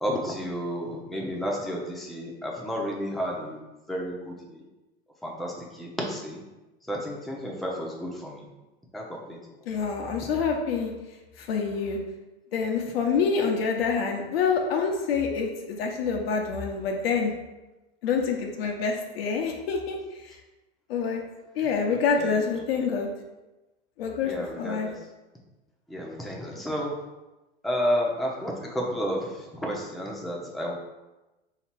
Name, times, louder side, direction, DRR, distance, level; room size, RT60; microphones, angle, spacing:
voice 1, 0.0-3.6 3.9-4.6 5.2-6.4 6.8-8.5 8.9-9.6 21.6-22.4 22.8-22.9 24.2-25.1 25.9-27.0 27.6-30.7, equal, ahead, -3 dB, 0.7 m, -32 dB
voice 2, 9.7-10.9 11.4-12.0 12.5-17.3 18.0-20.0 20.2-20.3 20.9-21.2 21.5-23.1 24.0-24.9, left 5 dB, 70° left, 2 dB, 0.8 m, -27 dB
3.2 x 2.9 x 4.5 m, 1.1 s
hypercardioid pair, 100°, 31 cm